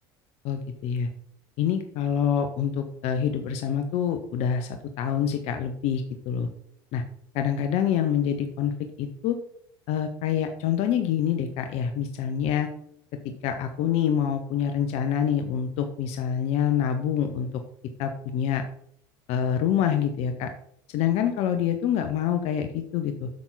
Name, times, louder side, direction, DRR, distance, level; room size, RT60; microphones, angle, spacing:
voice 1, 0.4-1.1 1.6-6.5 6.9-7.0 7.3-8.7 9.0-9.4 9.9-12.7 13.2-17.5 18.0-18.6 19.3-20.5 20.9-23.3, left 8 dB, 60° left, 7 dB, 0.9 m, -26 dB
8.7 x 6.1 x 4.0 m, 0.68 s
supercardioid pair, 90°, 12 cm